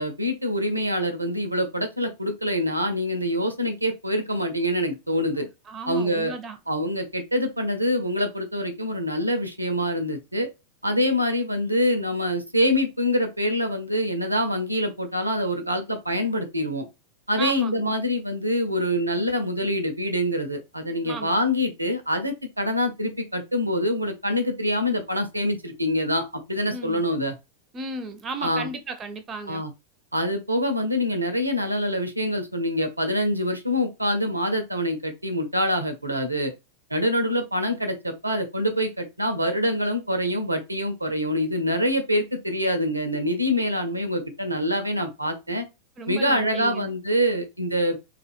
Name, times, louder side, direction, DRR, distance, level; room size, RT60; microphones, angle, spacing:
voice 1, 0.0-5.5 5.9-6.3 6.7-10.5 10.8-16.9 17.3-27.3 28.4-28.7 29.5-29.7 30.1-36.5 36.9-45.7 46.1-48.0, equal, 85° right, 0.4 m, -25 dB
voice 2, 5.7-6.6 17.4-17.9 21.0-21.4 26.7-27.0 27.7-29.6 46.0-46.9, right 3 dB, 25° right, 0.4 m, -34 dB
2.4 x 2.1 x 2.4 m
figure-of-eight pair, 90°, 0 cm